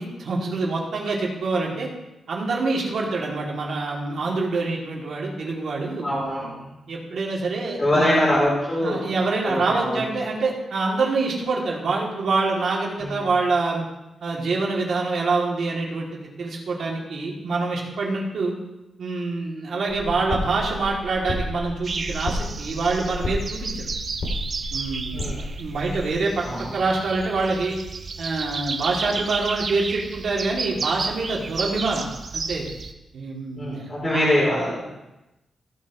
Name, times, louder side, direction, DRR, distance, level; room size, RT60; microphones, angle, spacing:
voice 1, 0.0-1.9 2.3-6.2 6.9-8.2 8.8-13.8 14.2-18.5 19.0-23.9 24.7-25.3 25.6-26.4 26.7-27.8 28.2-32.7 33.1-34.3, right 3 dB, 60° right, -3 dB, 2.7 m, -26 dB
voice 2, 6.0-6.7 7.8-9.1 9.4-10.0 13.0-13.3 25.1-25.5 26.4-26.7 33.5-34.8, left 1 dB, 20° left, -7 dB, 3.5 m, -23 dB
sound 1, 19.9-26.1, left 1 dB, 55° left, 2.5 m, -32 dB
sound 2, 21.8-32.9, right 4 dB, 40° right, 0.7 m, -32 dB
16.0 x 7.6 x 3.1 m, 0.97 s
wide cardioid pair, 155°, 0 cm